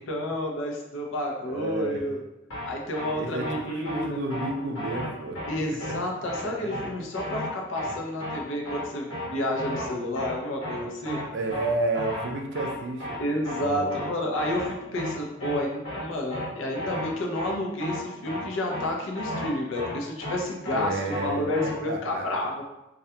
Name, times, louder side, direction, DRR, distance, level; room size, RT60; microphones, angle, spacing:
voice 1, 0.1-2.2 2.6-4.2 5.5-11.2 13.2-22.6, left 1 dB, 70° left, 0 dB, 0.5 m, -30 dB
voice 2, 1.4-2.0 3.2-5.4 6.4-6.7 11.3-14.1 20.7-22.3, right 2 dB, 55° right, 2 dB, 0.4 m, -31 dB
sound 1, 2.5-2.7 2.9-3.1 3.4-3.6 3.9-4.0 4.3-4.5 4.8-5.1 5.4-5.5 5.8-6.0 6.3-6.4 6.7-6.9 7.1-7.5 7.8-7.9 8.2-8.4 8.7-8.8 9.1-9.3 9.6-9.9 10.2-10.3 10.6-10.8 11.1-11.2 11.5-11.7 12.0-12.3 12.5-12.7 13.0-13.2 13.5-13.6 13.9-14.1 14.4-14.7 15.0-15.1 15.4-15.6 15.9-16.0 16.3-16.5 16.7-17.1 17.4-17.5 17.8-18.0 18.3-18.4 18.7-18.9 19.2-19.5 19.8-19.9 20.2-20.4 20.7-20.8 21.1-21.3 21.6-21.7, left 1 dB, 85° left, 1.0 m, -33 dB
2.4 x 2.2 x 2.7 m, 0.93 s
head